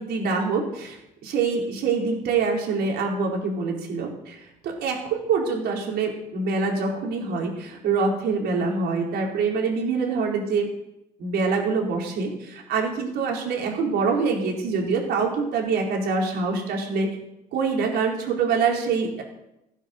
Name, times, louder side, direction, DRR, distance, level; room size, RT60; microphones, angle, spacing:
voice 1, 0.0-10.7 11.2-17.1 17.5-19.2, right 4 dB, 75° right, 0 dB, 4.4 m, -25 dB
17.0 x 9.5 x 6.6 m, 0.87 s
cardioid pair, 110°, 17 cm